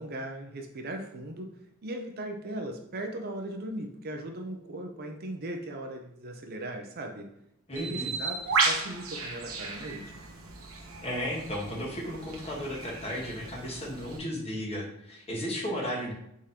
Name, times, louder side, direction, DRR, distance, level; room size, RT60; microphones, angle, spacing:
voice 1, 0.0-1.5 1.8-7.3 7.7-10.2, right 1 dB, 50° right, 4 dB, 0.6 m, -38 dB
voice 2, 7.7-8.1 11.0-16.1, equal, 30° left, -2 dB, 1.3 m, -34 dB
Bird, 7.8-14.2, right 4 dB, 90° right, 0.9 m, -34 dB
4.9 x 3.7 x 2.8 m, 0.79 s
head